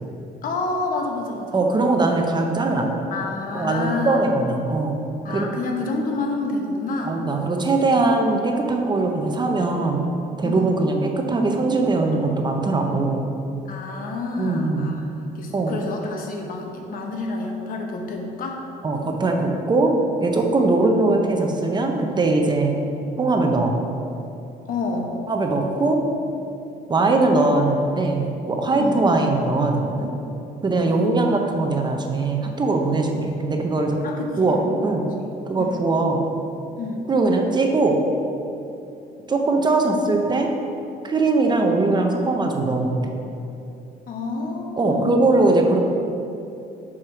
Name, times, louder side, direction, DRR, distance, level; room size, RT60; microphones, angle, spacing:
voice 1, 0.4-1.6 3.1-4.3 5.2-7.2 10.4-10.7 13.7-18.7 20.5-20.7 24.6-25.2 28.8-29.1 30.9-31.2 34.0-34.9 35.2-35.3 35.6-35.8 36.8-37.0 44.1-45.1, left 3 dB, 55° left, 1 dB, 1.0 m, -29 dB
voice 2, 1.5-2.9 3.5-5.0 5.3-5.4 7.0-10.1 10.4-13.3 14.4-14.9 15.5-15.8 18.8-19.9 20.2-22.8 23.2-23.8 25.3-26.1 26.9-30.1 30.6-34.0 34.4-35.1 35.5-36.2 37.1-38.0 39.3-40.5 41.0-43.1 44.8-45.8, right 3 dB, 25° right, 2 dB, 0.7 m, -21 dB
4.9 x 4.6 x 5.8 m, 2.7 s
cardioid pair, 110°, 17 cm